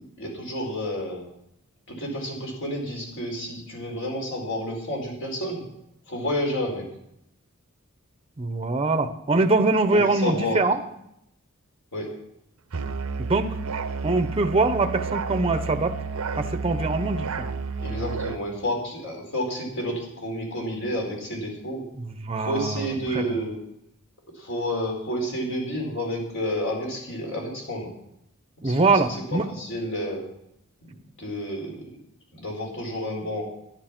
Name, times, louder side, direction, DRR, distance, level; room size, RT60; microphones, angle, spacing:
voice 1, 0.2-1.3 1.9-5.6 6.1-6.8 9.9-10.6 11.9-12.1 17.8-21.8 22.4-23.6 24.3-27.9 28.6-28.8 29.3-30.3 30.8-31.9 32.3-33.4, equal, 60° left, 0 dB, 4.7 m, -30 dB
voice 2, 8.4-10.8 13.2-13.5 14.0-16.0 16.4-17.5 22.2-23.4 28.6-29.5, right 3 dB, 25° right, 8 dB, 0.8 m, -23 dB
Musical instrument, 12.7-18.4, right 4 dB, 70° right, 0.8 m, -31 dB
11.5 x 11.0 x 6.0 m, 0.78 s
head